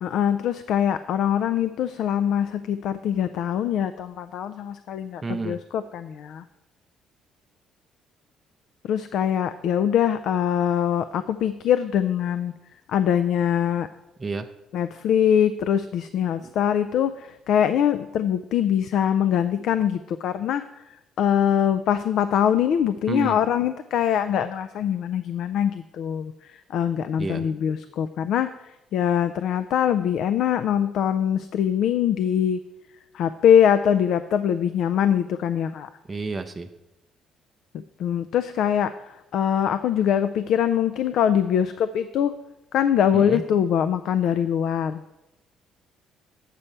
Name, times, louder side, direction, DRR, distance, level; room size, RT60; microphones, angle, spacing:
voice 1, 0.0-6.4 8.8-12.5 12.9-13.9 14.7-32.6 33.1-35.9 37.7-42.3 42.7-45.0, left 9 dB, 65° left, 11 dB, 0.3 m, -23 dB
voice 2, 5.2-5.6 14.2-14.5 23.1-23.4 27.2-27.5 36.1-36.7 43.1-43.4, right 3 dB, 15° right, 6 dB, 0.4 m, -30 dB
8.3 x 4.4 x 6.6 m, 0.93 s
cardioid pair, 145°, 0 cm